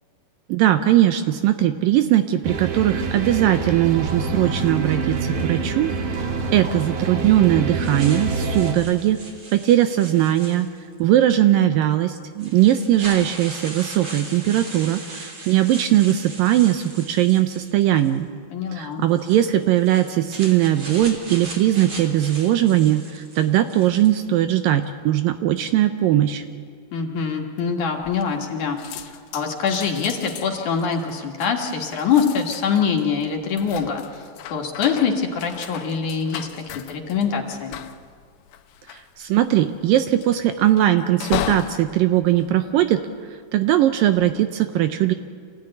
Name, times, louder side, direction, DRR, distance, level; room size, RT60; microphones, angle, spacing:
voice 1, 0.5-9.2 9.5-10.7 11.0-18.3 18.7-26.4 38.9-43.0 43.5-45.1, right 12 dB, 80° right, 9 dB, 2.0 m, -19 dB
sound 1, 2.4-8.7, right 4 dB, 55° right, 2.6 m, -26 dB
sound 2, 7.8-11.0 11.8-11.9 12.4-18.2 19.1-24.3, right 2 dB, 40° right, 4.5 m, -39 dB
voice 2, 18.5-19.1 26.9-28.8 29.3-36.5 36.7-37.8, left 6 dB, 55° left, 1 dB, 2.7 m, -24 dB
sound 3, 28.0-28.5 28.8-43.3 43.9-44.3, left 11 dB, 85° left, 3.1 m, -36 dB
27.0 x 16.0 x 9.9 m, 2.2 s
omnidirectional pair, 4.9 m